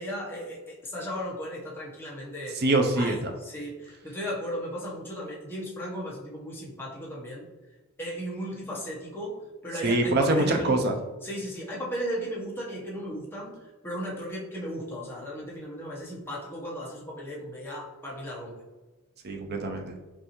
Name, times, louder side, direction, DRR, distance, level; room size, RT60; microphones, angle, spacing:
voice 1, 0.0-2.6 3.0-7.4 8.0-18.5, equal, 10° left, -5 dB, 1.0 m, -36 dB
voice 2, 2.5-3.3 9.8-10.9 19.2-19.9, right 2 dB, 50° right, 4 dB, 0.6 m, -24 dB
5.4 x 2.7 x 3.0 m, 1.2 s
head